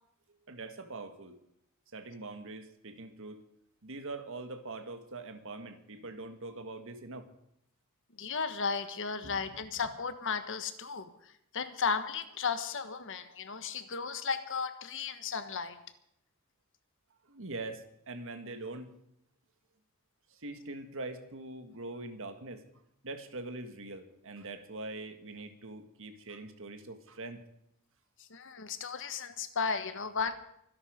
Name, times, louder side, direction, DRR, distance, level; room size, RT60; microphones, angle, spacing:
voice 1, 0.5-1.4 1.9-3.4 3.8-7.3 9.2-9.4 17.3-18.9 20.3-22.6 23.0-27.4, right 2 dB, 60° right, 8 dB, 1.7 m, -43 dB
voice 2, 8.2-15.8 28.2-30.4, left 5 dB, 60° left, 11 dB, 1.3 m, -35 dB
24.5 x 11.0 x 5.2 m, 0.76 s
head